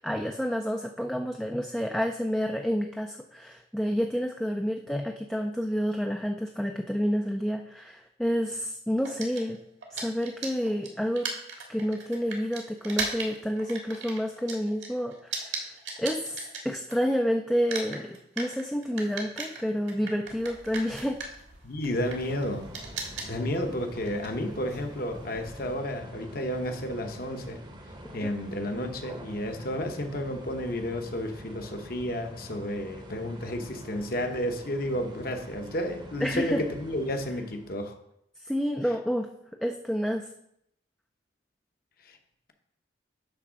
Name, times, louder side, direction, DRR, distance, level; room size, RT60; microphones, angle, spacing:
voice 1, 0.0-9.6 9.9-11.3 11.7-21.2 28.2-28.3 36.2-36.6 38.4-39.3 39.6-40.3, equal, 5° left, 3 dB, 0.3 m, -29 dB
sound 1, 9.0-17.2 17.5-25.8, right 4 dB, 80° right, 1.8 m, -38 dB
voice 2, 21.6-22.7 23.3-27.6 28.1-38.0 42.0-42.2, left 1 dB, 50° left, 5 dB, 0.9 m, -32 dB
sound 2, 21.9-37.8, equal, 25° right, 0.8 m, -46 dB
10.0 x 3.5 x 6.1 m, 0.76 s
head